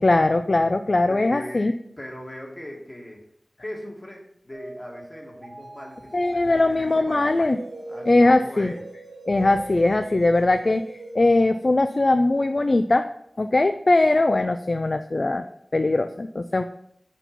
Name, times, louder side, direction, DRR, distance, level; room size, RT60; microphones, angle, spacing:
voice 1, 0.0-1.7 6.1-7.6 8.1-8.7 9.2-13.1 13.4-15.4 15.7-16.6, left 2 dB, 55° left, 8 dB, 0.3 m, -20 dB
voice 2, 1.1-1.6 2.0-3.2 3.6-7.4 7.9-8.8, left 1 dB, 30° left, -1 dB, 1.9 m, -39 dB
sound 1, 4.5-11.2, right 2 dB, 75° right, 1.5 m, -40 dB
6.0 x 4.5 x 5.2 m, 0.71 s
wide cardioid pair, 60°, 0 cm